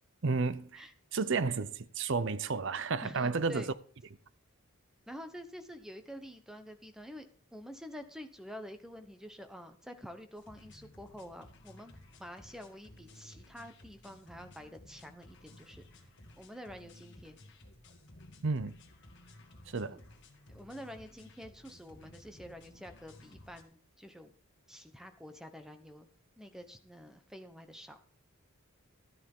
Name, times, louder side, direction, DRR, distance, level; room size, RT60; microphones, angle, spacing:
voice 1, 0.2-0.8 1.1-3.7 18.4-18.7 19.7-20.0, right 4 dB, 55° right, 0.6 m, -32 dB
voice 2, 3.0-3.7 5.1-16.1 16.4-17.4 19.9-20.0 20.5-24.3 24.7-26.1 26.4-28.2, equal, ahead, 1.0 m, -48 dB
sound 1, 10.4-23.6, left 1 dB, 50° left, 1.8 m, -56 dB
12.5 x 10.0 x 3.7 m
head